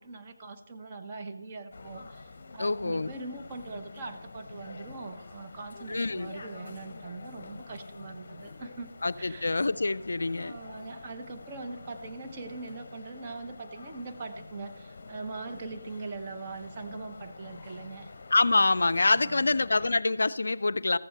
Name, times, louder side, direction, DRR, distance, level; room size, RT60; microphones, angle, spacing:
voice 1, 0.1-2.0 2.5-8.5 8.8-8.9 9.2-9.4 10.4-14.7 15.1-18.1 19.1-19.5, right 3 dB, 25° right, 4 dB, 0.8 m, -41 dB
sound 1, 1.7-19.9, left 3 dB, 45° left, 0.8 m, -47 dB
voice 2, 2.6-3.1 5.9-6.3 9.0-10.6 18.3-21.0, left 3 dB, 65° left, 14 dB, 0.3 m, -26 dB
14.5 x 7.7 x 3.4 m, 1.0 s
figure-of-eight pair, 160°, 0 cm